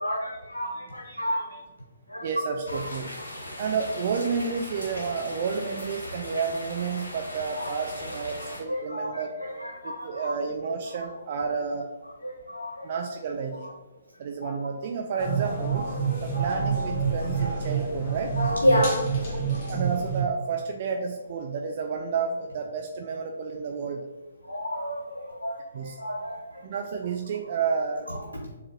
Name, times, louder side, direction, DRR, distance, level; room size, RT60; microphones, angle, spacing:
voice 1, 0.0-1.6 2.1-2.3 2.7-2.8 7.5-7.7 8.7-10.3 12.2-12.9 16.0-16.2 18.4-19.3 24.5-26.4, equal, 80° left, 1 dB, 0.6 m, -30 dB
voice 2, 2.2-3.1 3.6-9.4 9.8-11.9 12.8-13.7 14.2-15.9 16.2-18.4 19.7-24.1 25.7-26.0 26.6-28.1, right 5 dB, 45° right, 3 dB, 0.4 m, -30 dB
sound 1, 2.7-8.6, left 1 dB, 65° left, 1.0 m, -39 dB
sound 2, 15.2-20.2, right 5 dB, 35° left, 1.3 m, -28 dB
6.9 x 2.4 x 3.0 m, 1.3 s
figure-of-eight pair, 130°, 0 cm